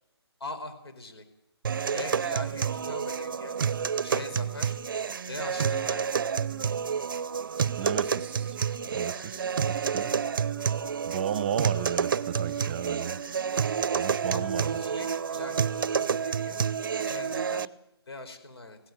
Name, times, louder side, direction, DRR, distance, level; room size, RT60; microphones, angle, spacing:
voice 1, 0.4-1.2 1.9-3.6 4.0-4.8 5.3-6.3 14.3-16.6 17.0-17.7 18.1-18.8, left 2 dB, 65° left, 9 dB, 4.8 m, -41 dB
sound 1, 1.6-17.7, right 7 dB, 50° right, 0.7 m, -29 dB
voice 2, 7.8-8.6 8.9-10.1 11.0-13.2 13.9-14.8, right 8 dB, 25° right, 15 dB, 0.9 m, -34 dB
17.0 x 16.5 x 9.3 m, 0.82 s
hypercardioid pair, 160°, 14 cm